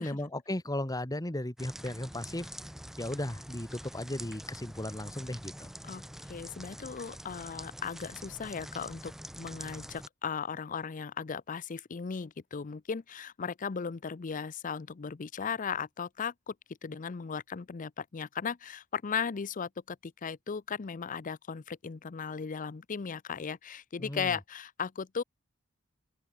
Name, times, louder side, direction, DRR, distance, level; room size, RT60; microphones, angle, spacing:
voice 1, 0.0-2.5 3.0-5.7 24.0-24.4, left 1 dB, 20° left, 1.9 m, -36 dB
sound 1, 1.6-10.1, equal, ahead, 2.1 m, -45 dB
voice 2, 5.8-16.5 16.8-25.2, left 6 dB, 40° left, 0.5 m, -37 dB
open air
head